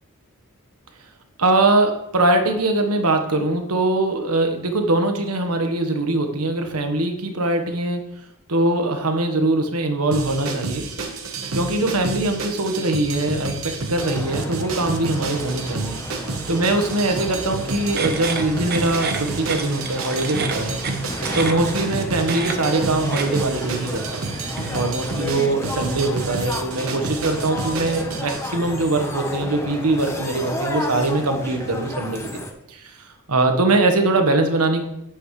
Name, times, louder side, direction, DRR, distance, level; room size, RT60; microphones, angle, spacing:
voice 1, 1.4-8.0 8.5-10.9 11.5-16.0 16.5-20.8 21.3-24.2 24.7-32.4 32.7-34.8, right 2 dB, 90° right, 5 dB, 1.3 m, -22 dB
sound 1, 10.1-28.4, right 3 dB, 65° right, 1.1 m, -30 dB
sound 2, 14.0-32.5, equal, 10° left, 1.0 m, -32 dB
sound 3, 17.9-24.8, right 5 dB, 45° right, 0.9 m, -32 dB
9.8 x 8.0 x 3.2 m, 0.80 s
head